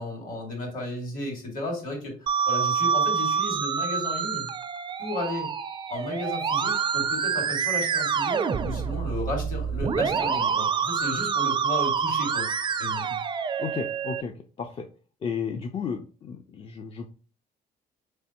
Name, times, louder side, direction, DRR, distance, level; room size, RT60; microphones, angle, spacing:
voice 1, 0.0-4.5 5.0-5.5 5.9-12.5 12.8-13.0, left 1 dB, 55° left, 1 dB, 2.1 m, -34 dB
Musical instrument, 2.3-14.2, right 6 dB, 30° right, 0.4 m, -27 dB
voice 2, 13.6-14.3 14.6-14.8 15.2-17.1, left 6 dB, 35° left, 4 dB, 0.4 m, -33 dB
4.0 x 3.3 x 2.9 m, 0.39 s
cardioid pair, 110°, 17 cm